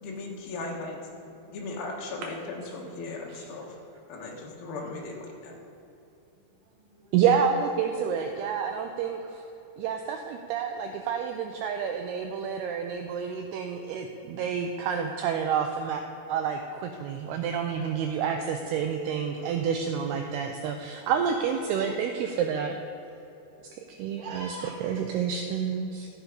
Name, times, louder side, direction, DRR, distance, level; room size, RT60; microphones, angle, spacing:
voice 1, 0.0-1.0 1.5-3.8 4.1-5.5, left 3 dB, 65° left, -2 dB, 2.9 m, -37 dB
voice 2, 6.4-7.2 8.1-8.4 10.7-11.0 19.4-19.6 23.5-24.8, right 1 dB, 55° right, -3 dB, 2.7 m, -47 dB
voice 3, 7.1-9.4 9.8-16.0 16.3-22.8 23.9-24.6 24.8-26.1, right 7 dB, 90° right, 4 dB, 2.3 m, -29 dB
13.5 x 7.2 x 5.2 m, 2.8 s
omnidirectional pair, 5.2 m